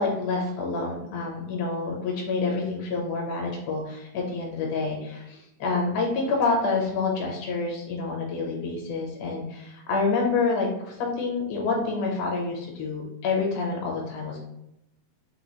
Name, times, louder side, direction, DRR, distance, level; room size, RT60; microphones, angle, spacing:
voice 1, 0.0-14.4, left 3 dB, 70° left, -1 dB, 2.0 m, -28 dB
6.5 x 2.5 x 2.9 m, 0.84 s
omnidirectional pair, 4.2 m